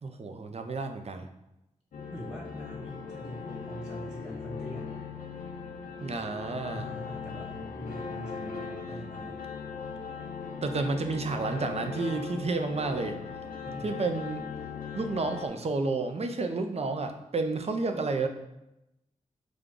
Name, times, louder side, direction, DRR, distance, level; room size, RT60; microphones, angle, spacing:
voice 1, 0.0-1.3 6.0-6.9 10.6-13.2 13.8-14.5 14.9-18.3, right 3 dB, 50° right, 6 dB, 0.5 m, -31 dB
sound 1, 1.9-15.5, left 5 dB, 90° left, 0.5 m, -39 dB
voice 2, 2.1-4.9 6.7-9.4 13.6-14.0, equal, 20° right, -2 dB, 1.3 m, -43 dB
5.0 x 2.3 x 3.8 m, 0.89 s
cardioid pair, 50°, 14 cm